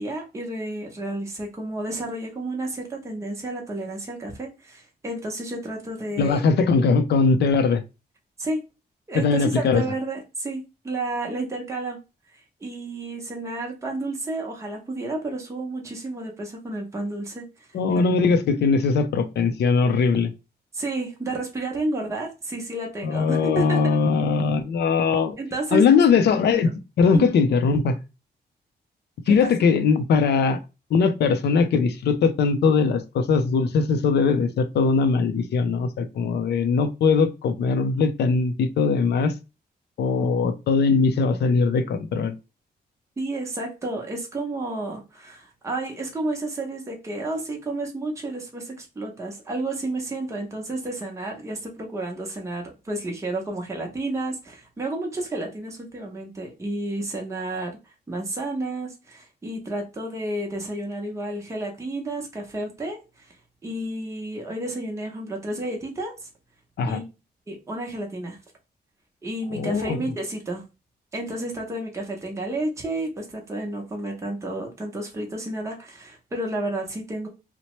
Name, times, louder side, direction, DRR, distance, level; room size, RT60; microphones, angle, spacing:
voice 1, 0.0-6.4 8.4-8.6 9.1-12.0 12.3-18.0 20.7-24.0 25.4-26.2 26.5-26.7 27.1-27.4 29.4-29.5 43.2-63.4 63.6-66.3 66.9-67.1 67.5-68.4 69.2-70.6 71.1-77.3, right 2 dB, 15° right, 0 dB, 0.7 m, -31 dB
voice 2, 6.2-7.8 9.1-9.8 17.7-20.3 23.0-25.4 25.7-28.0 29.3-30.6 30.9-39.3 40.0-42.3 66.8-67.0 69.5-70.0, left 5 dB, 80° left, 10 dB, 0.5 m, -20 dB
2.9 x 2.1 x 2.9 m, 0.28 s
wide cardioid pair, 125°, 17 cm